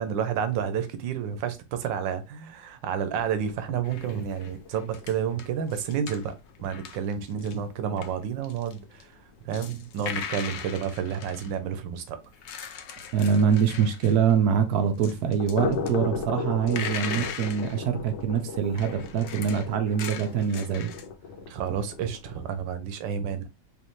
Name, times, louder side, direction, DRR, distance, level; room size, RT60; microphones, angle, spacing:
voice 1, 0.0-6.3 6.6-9.1 9.4-12.2 17.2-17.3 21.5-23.4, right 8 dB, 85° right, 1.4 m, -30 dB
sound 1, 3.1-9.0 9.3-9.4 9.8-9.9 10.3-10.4 10.7-10.8 13.6-13.7 15.2-22.6, left 4 dB, 70° left, 1.4 m, -37 dB
sound 2, 3.8-7.6 7.9-11.5 12.2-14.5 14.9-15.9 16.4-17.8 18.7-21.1, left 7 dB, 90° left, 0.6 m, -39 dB
voice 2, 13.1-20.9, right 7 dB, 65° right, 1.1 m, -24 dB
5.2 x 2.5 x 3.1 m
omnidirectional pair, 1.9 m